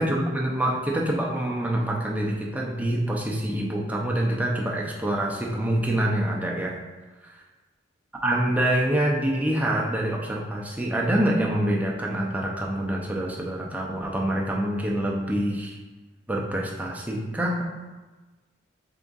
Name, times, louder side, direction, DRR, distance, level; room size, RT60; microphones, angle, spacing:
voice 1, 0.0-6.8 7.2-7.3 8.2-15.8 16.3-17.6, right 1 dB, 5° right, -3 dB, 0.5 m, -26 dB
3.6 x 3.6 x 3.9 m, 1.2 s
head